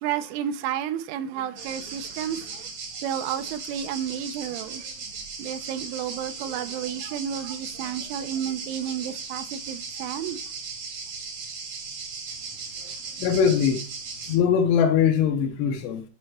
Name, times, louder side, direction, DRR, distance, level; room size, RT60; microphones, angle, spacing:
voice 1, 0.0-2.7 3.0-4.9 5.4-10.4 12.8-13.3, right 9 dB, 85° right, 3.2 m, -32 dB
sound 1, 1.6-14.4, right 5 dB, 60° right, 1.7 m, -37 dB
voice 2, 13.2-13.8 14.3-16.0, left 7 dB, 80° left, 2.8 m, -21 dB
11.5 x 4.8 x 3.0 m
omnidirectional pair, 5.4 m